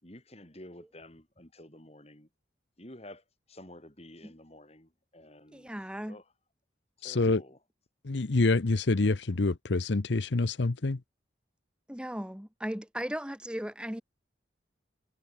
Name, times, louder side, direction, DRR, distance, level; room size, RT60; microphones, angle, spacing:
voice 1, 0.0-2.3 2.8-3.2 3.5-5.7 6.1-6.2 7.0-7.6, left 1 dB, 30° left, 4.4 m, -50 dB
voice 2, 5.5-6.2 11.9-14.0, equal, 5° right, 1.3 m, -37 dB
voice 3, 7.0-7.4 8.0-11.0, left 3 dB, 70° left, 0.8 m, -26 dB
head